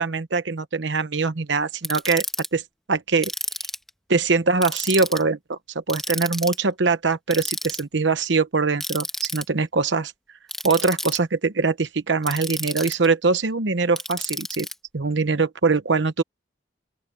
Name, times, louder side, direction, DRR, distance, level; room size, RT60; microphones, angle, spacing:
voice 1, 0.0-2.2 2.5-2.6 2.9-3.3 4.1-10.1 10.6-14.7 14.9-16.2, right 4 dB, 80° right, 0.9 m, -22 dB
Ratchet pawl, 1.8-2.5 3.2-3.9 4.6-5.2 5.9-6.6 7.3-7.8 8.8-9.4 10.5-11.2 12.2-13.1 14.0-14.7, left 1 dB, ahead, 1.4 m, -30 dB
open air
head